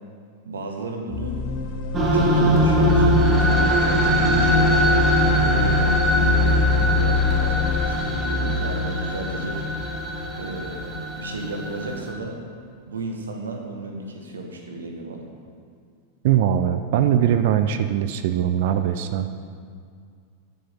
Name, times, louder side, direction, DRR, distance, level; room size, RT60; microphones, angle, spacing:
voice 1, 0.4-1.4 2.1-4.7 5.4-9.6 10.4-10.8 11.1-12.4 12.9-15.3, right 2 dB, 70° right, 2 dB, 1.8 m, -34 dB
sound 1, 1.1-10.9, left 5 dB, 50° left, 1.7 m, -25 dB
sound 2, 1.9-12.1, right 1 dB, 25° right, 2.7 m, -22 dB
voice 2, 16.2-19.3, right 10 dB, 50° right, 9 dB, 0.6 m, -21 dB
13.0 x 10.0 x 5.6 m, 2.2 s
figure-of-eight pair, 90°, 0 cm